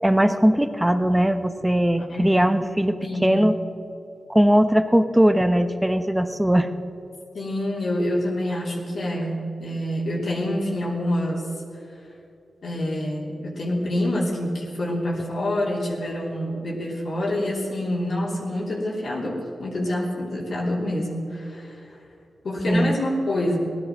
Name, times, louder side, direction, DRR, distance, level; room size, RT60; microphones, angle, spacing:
voice 1, 0.0-3.6 4.3-6.7 22.7-22.9, equal, 10° right, 10 dB, 1.0 m, -19 dB
voice 2, 2.0-2.4 3.0-3.4 7.3-11.4 12.6-21.8 22.4-23.6, left 1 dB, 65° left, -4 dB, 3.1 m, -27 dB
16.0 x 11.5 x 6.0 m, 2.7 s
cardioid pair, 50°, 0 cm